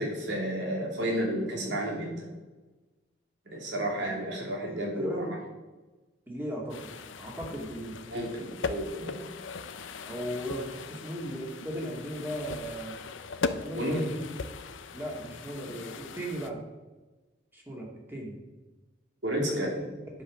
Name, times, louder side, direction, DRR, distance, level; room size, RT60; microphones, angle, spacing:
voice 1, 0.0-2.3 3.5-5.4 8.1-9.2 13.7-14.0 19.2-19.7, right 1 dB, 65° right, -1 dB, 2.8 m, -31 dB
voice 2, 4.6-5.3 6.3-6.9 7.2-8.0 10.1-13.0 13.6-14.2 14.9-16.6 17.5-18.4 19.4-19.8, right 1 dB, 10° right, -2 dB, 2.1 m, -37 dB
sound 1, 6.7-16.5, left 4 dB, 80° left, 0.7 m, -39 dB
10.5 x 5.5 x 6.3 m, 1.2 s
head